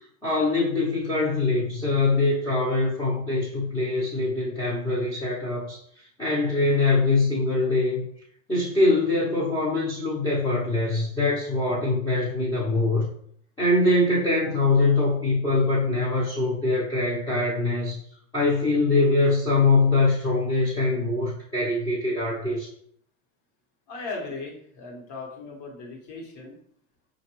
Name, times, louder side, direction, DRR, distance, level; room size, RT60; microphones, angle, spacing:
voice 1, 0.2-5.8 6.2-8.0 8.5-13.0 13.6-18.0 18.3-22.7, left 2 dB, 10° left, -7 dB, 1.0 m, -23 dB
voice 2, 23.9-26.5, left 3 dB, 40° left, 0 dB, 1.4 m, -37 dB
5.1 x 2.6 x 3.0 m, 0.65 s
hypercardioid pair, 120°, 44 cm